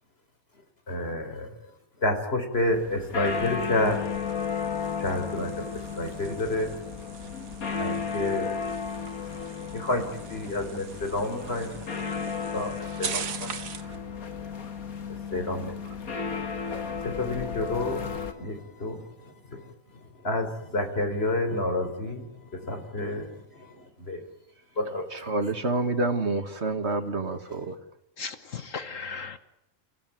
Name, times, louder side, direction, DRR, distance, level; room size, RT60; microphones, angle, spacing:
voice 1, 0.9-1.6 2.0-4.0 5.0-6.7 7.8-8.6 9.7-11.7 12.5-13.5 15.3-15.9 17.0-24.2 24.8-25.3, left 2 dB, 45° left, 6 dB, 4.2 m, -30 dB
sound 1, 2.5-18.3, left 6 dB, 85° left, 2.3 m, -34 dB
sound 2, 3.3-14.0, right 7 dB, 75° right, 1.6 m, -42 dB
voice 2, 25.1-27.8, right 2 dB, 50° right, 8 dB, 2.0 m, -28 dB
voice 3, 28.2-29.4, left 5 dB, 65° left, 11 dB, 1.5 m, -36 dB
29.5 x 15.5 x 9.1 m, 0.89 s
omnidirectional pair, 1.5 m